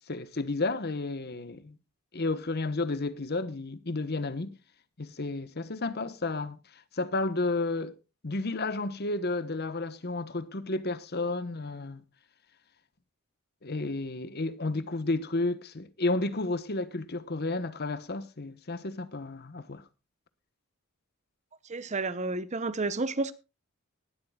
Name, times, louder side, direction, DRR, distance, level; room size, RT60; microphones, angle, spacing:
voice 1, 0.1-1.8 2.1-4.6 5.0-6.6 6.9-7.9 8.2-12.0 13.6-19.8, left 2 dB, 45° left, 1.1 m, -32 dB
voice 2, 21.7-23.3, right 3 dB, 30° right, 0.8 m, -31 dB
19.0 x 12.0 x 2.3 m
head